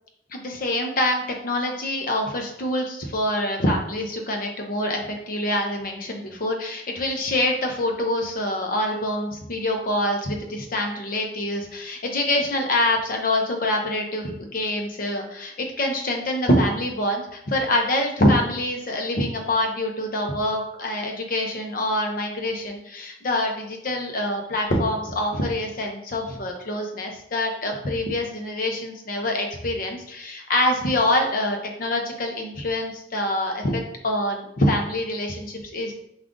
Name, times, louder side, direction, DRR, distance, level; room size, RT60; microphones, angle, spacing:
voice 1, 0.3-35.9, left 1 dB, 50° left, 2 dB, 0.7 m, -25 dB
4.9 x 2.4 x 3.7 m, 0.80 s
head